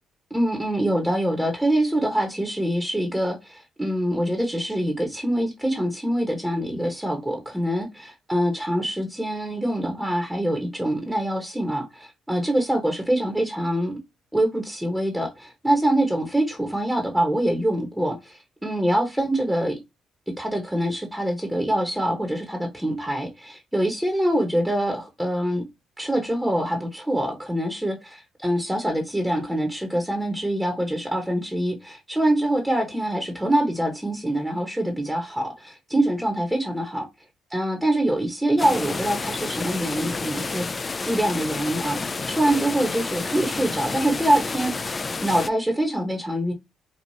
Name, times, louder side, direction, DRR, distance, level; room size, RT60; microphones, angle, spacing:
voice 1, 0.3-14.0 14.3-19.8 20.3-25.6 26.0-37.0 37.5-46.5, right 1 dB, 5° right, 1.0 m, -25 dB
sound 1, 38.6-45.5, left 4 dB, 30° left, 0.3 m, -30 dB
4.7 x 2.4 x 2.6 m
cardioid pair, 90°, 0 cm